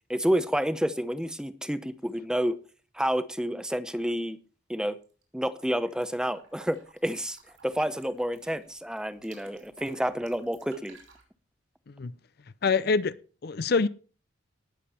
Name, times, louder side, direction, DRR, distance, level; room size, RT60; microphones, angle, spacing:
voice 1, 0.1-2.6 2.9-4.4 4.7-5.0 5.3-7.4 7.6-11.0, equal, 5° right, 0.7 m, -29 dB
sound 1, 4.9-5.2 5.5-11.2, right 5 dB, 85° right, 6.0 m, -56 dB
voice 2, 12.6-13.1 13.4-13.9, left 4 dB, 50° left, 0.5 m, -25 dB
18.5 x 7.4 x 4.3 m
head